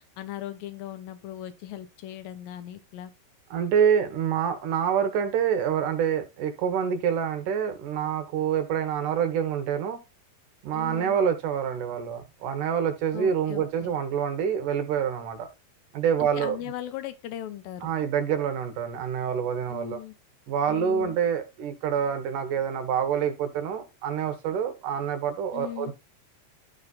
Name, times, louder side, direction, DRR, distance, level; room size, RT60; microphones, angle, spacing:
voice 1, 0.0-3.1 10.7-11.2 13.1-13.9 16.2-17.9 19.7-20.1 20.7-21.2 25.5-25.9, left 12 dB, 75° left, 2.6 m, -38 dB
voice 2, 3.5-10.0 10.6-15.5 15.9-16.6 17.8-20.0 20.5-25.9, right 8 dB, 70° right, 2.4 m, -26 dB
12.0 x 4.0 x 4.0 m
omnidirectional pair, 4.2 m